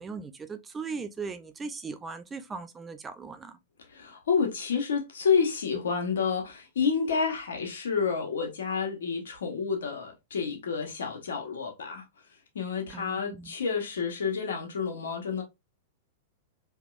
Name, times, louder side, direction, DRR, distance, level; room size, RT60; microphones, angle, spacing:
voice 1, 0.0-3.5 12.9-13.5, right 4 dB, 15° right, 0.5 m, -38 dB
voice 2, 3.9-12.0 12.5-15.4, left 6 dB, 80° left, 1.3 m, -29 dB
3.4 x 3.0 x 2.4 m
hypercardioid pair, 115°, 0 cm